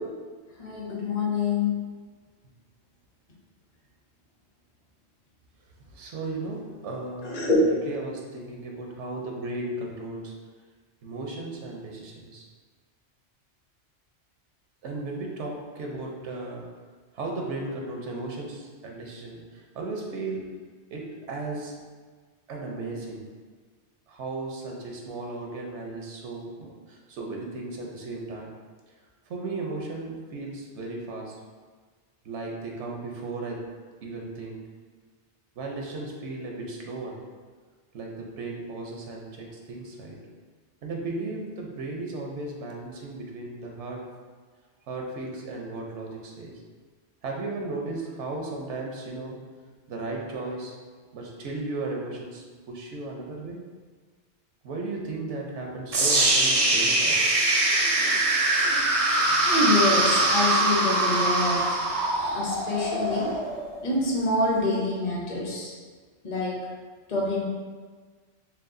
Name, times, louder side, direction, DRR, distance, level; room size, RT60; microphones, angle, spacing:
voice 1, 0.6-1.8 7.2-7.6 59.4-61.8 62.3-63.3 63.8-65.7 66.2-66.7 67.1-67.4, left 2 dB, 40° left, -4 dB, 0.8 m, -26 dB
voice 2, 5.9-10.3 11.0-12.4 14.8-16.6 17.1-19.4 19.7-20.4 20.9-21.7 22.5-23.3 24.1-28.5 29.3-31.4 32.2-33.6 34.0-34.6 35.6-37.2 37.9-40.2 40.8-44.0 44.9-46.5 47.2-49.4 49.9-50.7 51.1-53.6 54.6-57.2, right 2 dB, 90° right, 0 dB, 1.0 m, -35 dB
sound 1, 55.9-64.0, right 2 dB, 45° right, 0.4 m, -23 dB
4.7 x 3.3 x 2.6 m, 1.5 s
omnidirectional pair, 1.2 m